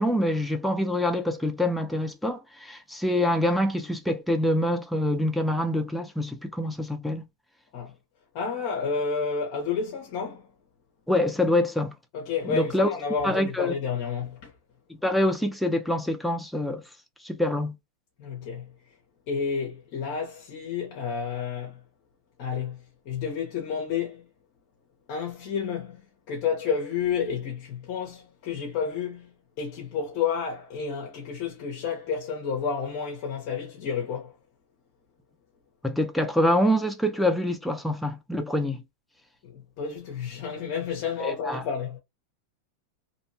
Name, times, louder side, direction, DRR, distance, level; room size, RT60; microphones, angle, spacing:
voice 1, 0.0-7.2 11.1-11.9 12.4-12.9 13.2-13.8 15.0-16.8 17.2-17.7 35.8-38.8 41.2-41.6, left 1 dB, ahead, 0.4 m, -25 dB
voice 2, 8.3-10.5 12.1-14.5 18.2-18.7 19.3-21.8 22.4-24.3 25.1-34.4 39.4-42.0, left 6 dB, 45° left, 0.7 m, -30 dB
2.6 x 2.1 x 2.7 m
supercardioid pair, 155°, 0 cm